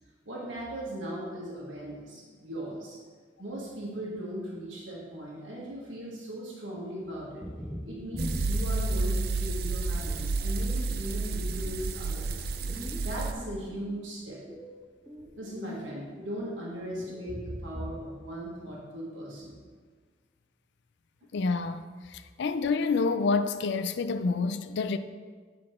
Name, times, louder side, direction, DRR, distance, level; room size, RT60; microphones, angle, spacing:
voice 1, 0.2-3.0 3.4-7.5 7.8-12.5 13.0-14.4 15.4-19.6, right 1 dB, 85° right, 1.4 m, -38 dB
sound 1, 7.4-9.2 9.7-10.3 10.7-13.9 14.3-15.8 16.1-16.4 17.0-18.2 18.4-18.8, equal, 5° right, 0.5 m, -42 dB
sound 2, 8.2-13.3, right 3 dB, 55° right, 0.5 m, -30 dB
voice 2, 21.3-21.8 22.1-25.0, left 4 dB, 65° left, 0.4 m, -28 dB
7.5 x 4.2 x 4.3 m
head